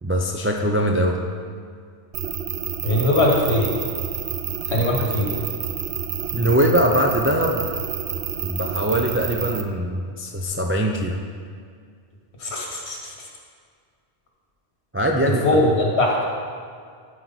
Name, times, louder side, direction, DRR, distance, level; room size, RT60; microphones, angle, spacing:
voice 1, 0.0-1.2 4.8-4.9 6.3-7.6 8.4-11.2 14.9-15.6, equal, 20° right, 1 dB, 0.3 m, -22 dB
sound 1, 2.1-9.6, right 9 dB, 75° right, 0.8 m, -29 dB
voice 2, 2.8-3.8 4.7-5.4 12.4-13.1 15.4-16.3, left 1 dB, 70° left, -1 dB, 1.6 m, -21 dB
13.0 x 4.7 x 4.1 m, 2.1 s
omnidirectional pair, 1.1 m